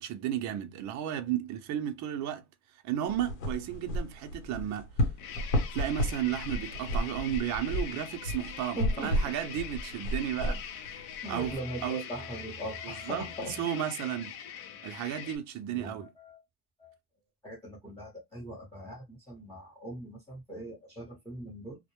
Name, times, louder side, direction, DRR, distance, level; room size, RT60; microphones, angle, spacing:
voice 1, 0.0-2.4 2.8-4.9 5.7-10.6 11.3-12.0 12.8-13.2 13.6-14.3 14.8-16.1, right 11 dB, 45° right, 0.5 m, -33 dB
sound 1, 3.1-11.6, equal, 85° left, 1.0 m, -33 dB
sound 2, 5.1-15.4, left 9 dB, 70° left, 0.6 m, -43 dB
voice 2, 8.8-9.4 10.4-10.6 11.2-13.7 15.6-16.4 16.8-16.9 17.4-21.8, right 1 dB, 5° left, 0.8 m, -41 dB
2.1 x 2.1 x 2.9 m
supercardioid pair, 135°, 43 cm